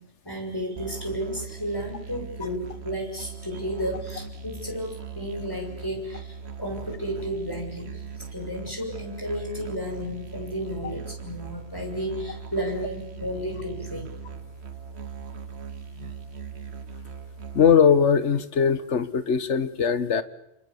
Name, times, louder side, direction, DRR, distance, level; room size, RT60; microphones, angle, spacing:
voice 1, 0.2-14.1, equal, 20° left, 1 dB, 6.7 m, -33 dB
Musical instrument, 0.8-17.7, right 6 dB, 65° right, 1.4 m, -39 dB
voice 2, 17.5-20.2, left 7 dB, 75° left, 13 dB, 1.6 m, -20 dB
28.5 x 28.0 x 7.1 m, 0.88 s
omnidirectional pair, 1.2 m